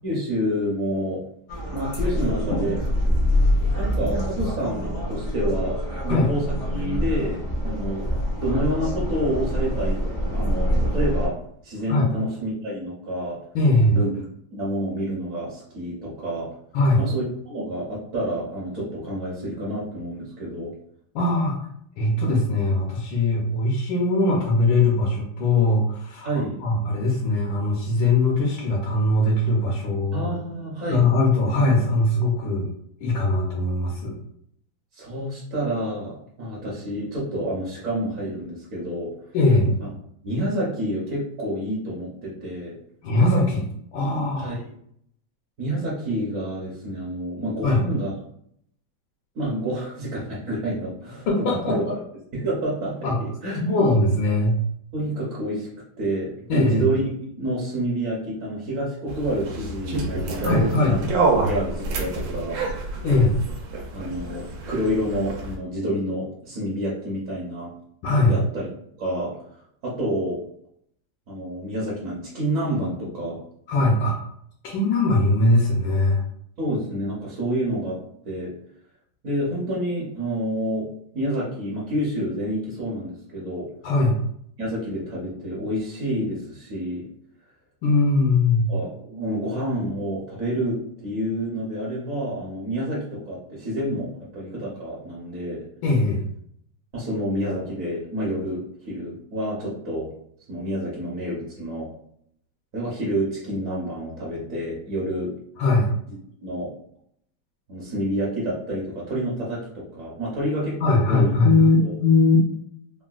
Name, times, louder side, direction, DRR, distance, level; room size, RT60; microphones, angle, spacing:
voice 1, 0.0-1.2 1.7-2.8 3.8-6.4 6.7-8.1 8.4-11.3 11.6-13.4 13.9-14.1 14.5-16.5 17.0-20.7 26.2-26.6 30.1-31.1 34.9-39.1 39.8-39.9 40.2-42.7 44.4-44.6 45.6-48.1 49.3-51.8 52.3-53.6 54.9-55.7 56.0-57.0 57.4-61.0 61.4-62.6 63.9-67.7 68.2-68.6 69.0-69.3 69.8-70.4 71.3-73.4 76.6-78.0 78.2-78.5 79.2-80.9 81.1-83.7 84.6-87.0 88.7-95.6 96.9-100.1 100.5-101.9 102.7-105.3 106.4-106.7 107.7-111.3 111.8-112.0, equal, 55° right, -6 dB, 1.0 m, -28 dB
sound 1, 1.5-11.3, equal, 55° left, 0.6 m, -25 dB
voice 2, 13.5-14.0 16.7-17.0 21.1-21.6 22.0-30.3 30.9-32.7 33.0-34.2 39.3-39.7 43.0-43.7 43.9-44.5 47.6-47.8 51.3-51.8 53.0-53.2 53.5-54.6 56.5-56.9 60.4-61.0 63.0-63.4 68.0-68.3 73.7-74.2 74.6-76.2 83.8-84.2 87.8-88.7 95.8-96.2 105.6-105.9 110.8-112.4, left 2 dB, 80° left, -2 dB, 1.4 m, -20 dB
sound 2, 59.1-65.6, right 3 dB, 80° right, 1.3 m, -27 dB
3.7 x 2.2 x 2.3 m, 0.69 s
omnidirectional pair, 2.1 m